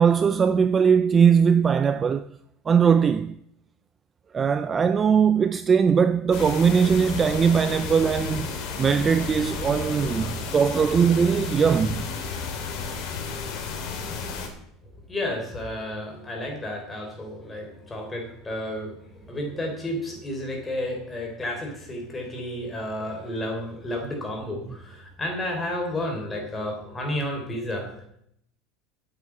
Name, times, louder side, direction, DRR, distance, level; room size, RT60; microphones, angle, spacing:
voice 1, 0.0-2.3 2.7-3.4 4.3-8.5 8.8-12.1, right 6 dB, 20° right, 0.4 m, -20 dB
sound 1, 6.3-14.5, left 5 dB, 45° left, 2.7 m, -32 dB
voice 2, 15.1-28.1, left 1 dB, 10° left, 3.5 m, -32 dB
8.8 x 8.6 x 8.4 m
cardioid pair, 165°, 0 cm